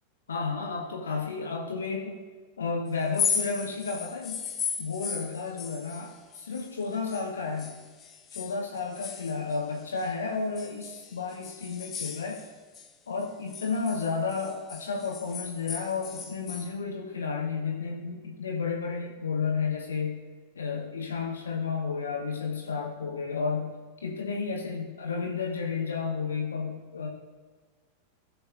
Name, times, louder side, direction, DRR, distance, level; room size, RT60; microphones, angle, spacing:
voice 1, 0.3-2.2 2.6-4.5 4.8-7.8 8.3-12.4 13.1-20.2 20.5-27.1, left 5 dB, 70° left, 0 dB, 1.1 m, -32 dB
sound 1, 3.0-7.3 7.6-10.1 10.6-12.9 13.2-16.7, left 6 dB, 25° left, 0.8 m, -36 dB
15.5 x 6.8 x 2.6 m, 1.4 s
figure-of-eight pair, 90°, 0 cm